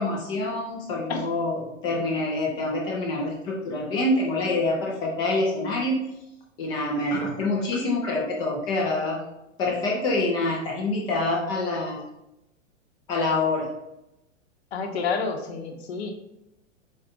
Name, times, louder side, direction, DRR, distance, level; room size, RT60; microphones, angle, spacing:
voice 1, 0.0-6.0 6.6-9.2 9.6-12.0 13.1-13.7, left 2 dB, 15° left, -2 dB, 0.3 m, -26 dB
voice 2, 14.7-16.1, left 5 dB, 55° left, 5 dB, 0.8 m, -29 dB
4.1 x 3.9 x 2.4 m, 0.89 s
figure-of-eight pair, 100°, 39 cm